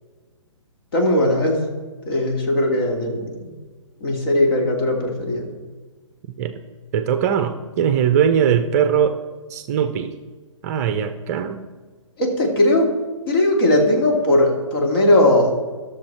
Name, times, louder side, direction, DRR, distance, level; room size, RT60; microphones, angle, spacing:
voice 1, 0.9-1.6 2.1-3.5 4.0-5.5 12.2-12.9 13.3-15.6, left 1 dB, 45° left, 1 dB, 2.5 m, -18 dB
voice 2, 6.9-9.2 9.5-10.1 10.6-11.6, right 8 dB, 30° right, 9 dB, 0.6 m, -20 dB
13.5 x 6.6 x 4.4 m, 1.4 s
figure-of-eight pair, 130°, 17 cm